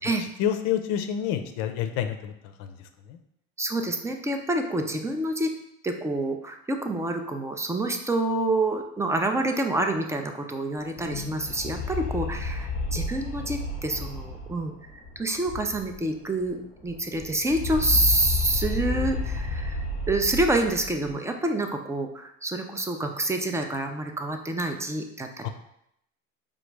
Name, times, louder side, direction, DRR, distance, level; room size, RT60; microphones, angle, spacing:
voice 1, 0.4-2.3 2.6-2.7 3.1-3.2 25.4-25.5, left 9 dB, 55° left, 7 dB, 0.6 m, -28 dB
voice 2, 3.6-5.5 5.8-14.7 15.2-25.5, right 2 dB, 10° right, 5 dB, 0.4 m, -27 dB
sound 1, 10.8-16.2 16.4-16.5 16.8-21.1, left 3 dB, 20° left, 0.8 m, -32 dB
5.0 x 2.5 x 3.2 m, 0.75 s
hypercardioid pair, 75°, 39 cm